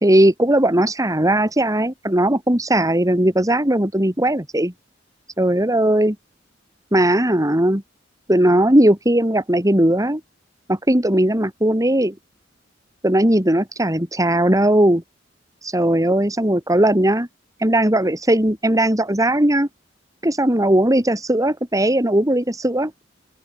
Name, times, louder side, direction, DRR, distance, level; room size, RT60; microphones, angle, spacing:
voice 1, 0.0-4.7 5.4-6.2 6.9-7.8 8.3-10.2 10.7-12.1 13.0-15.0 15.6-17.3 17.6-19.7 20.2-22.9, right 1 dB, 20° right, 3.5 m, -18 dB
open air
head